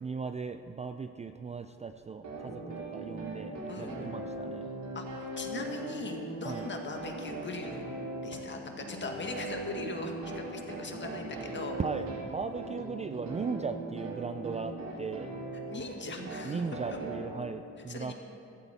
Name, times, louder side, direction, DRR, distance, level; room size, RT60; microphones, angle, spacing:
voice 1, 0.0-4.8 6.4-6.6 11.8-15.4 16.4-18.1, right 5 dB, 25° right, 8 dB, 0.4 m, -37 dB
sound 1, 2.2-17.2, right 2 dB, 70° right, 2.9 m, -39 dB
voice 2, 4.9-7.8 8.2-11.8 15.7-16.6 17.9-18.1, left 3 dB, 40° left, 3 dB, 1.8 m, -40 dB
15.5 x 12.0 x 4.2 m, 3.0 s
cardioid pair, 90°, 30 cm